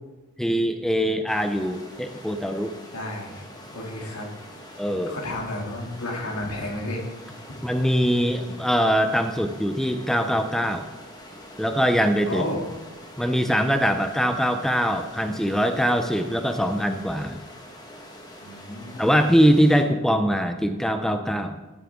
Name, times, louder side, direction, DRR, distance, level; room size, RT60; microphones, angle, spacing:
voice 1, 0.4-2.7 4.8-5.2 7.6-10.9 11.6-12.4 13.2-17.4 19.0-21.6, equal, ahead, 7 dB, 0.4 m, -22 dB
sound 1, 1.3-19.8, equal, 20° left, 1.4 m, -44 dB
voice 2, 2.9-4.3 5.0-7.0 12.2-12.6 18.4-19.2, left 1 dB, 85° left, -1 dB, 2.5 m, -32 dB
14.0 x 7.5 x 3.6 m, 1.1 s
head